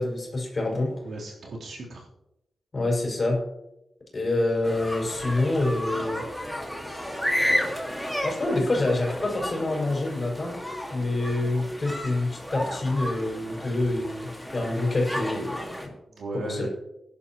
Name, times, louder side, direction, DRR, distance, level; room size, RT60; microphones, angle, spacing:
voice 1, 0.0-0.9 2.7-3.4 4.1-6.2 7.4-7.8 8.2-10.5 10.9-15.9 16.3-16.7, left 2 dB, 30° left, -2 dB, 5.6 m, -27 dB
voice 2, 1.0-2.1 16.1-16.7, right 2 dB, 75° right, -4 dB, 3.6 m, -36 dB
sound 1, 4.6-15.9, left 1 dB, ahead, 2.0 m, -32 dB
21.0 x 11.5 x 3.1 m, 0.87 s
wide cardioid pair, 170°, 0 cm